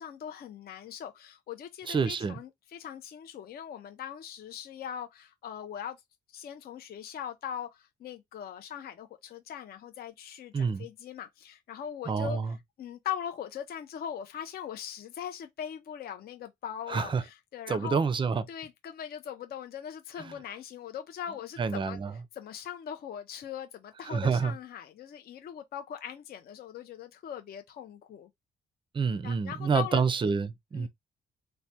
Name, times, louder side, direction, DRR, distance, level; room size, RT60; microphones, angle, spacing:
voice 1, 0.0-6.0 6.3-18.0 18.5-22.0 22.3-28.3 29.2-30.0 30.7-30.9, left 9 dB, 50° left, 0.4 m, -40 dB
voice 2, 1.9-2.4 10.5-10.9 12.1-12.5 16.9-17.2 17.7-18.5 21.6-22.1 24.1-24.5 28.9-30.9, right 5 dB, 25° right, 0.4 m, -28 dB
3.2 x 2.1 x 2.7 m
cardioid pair, 90°, 20 cm